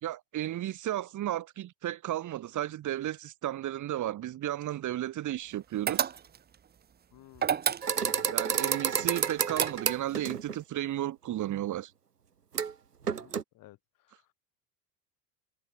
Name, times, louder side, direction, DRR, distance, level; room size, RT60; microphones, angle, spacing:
voice 1, 0.0-6.1 8.3-11.9, right 13 dB, 40° right, 5.8 m, -34 dB
sound 1, 5.9-6.6 7.4-8.3 9.1-10.1, right 8 dB, 20° right, 1.3 m, -30 dB
voice 2, 7.1-7.6 8.0-8.3 13.2-13.8 14.1-14.2, left 17 dB, 45° left, 5.7 m, -54 dB
sound 2, 7.8-10.6 12.5-12.7 13.0-13.4, right 7 dB, 80° right, 2.1 m, -30 dB
figure-of-eight pair, 75°, 47 cm